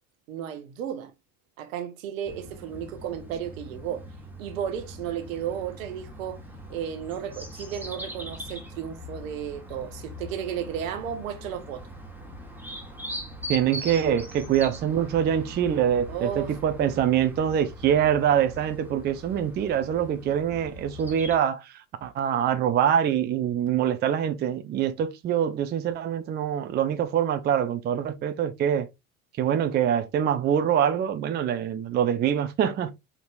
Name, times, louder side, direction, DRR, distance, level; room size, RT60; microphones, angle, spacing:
voice 1, 0.3-1.1 1.6-4.0 4.4-6.4 6.7-11.8 16.1-16.6, right 9 dB, 65° right, 1.0 m, -33 dB
sound 1, 2.3-21.4, equal, 5° right, 1.4 m, -41 dB
voice 2, 13.5-21.7 22.0-28.9 29.4-32.9, right 9 dB, 25° right, 0.5 m, -24 dB
4.7 x 4.0 x 2.4 m
figure-of-eight pair, 65°, 43 cm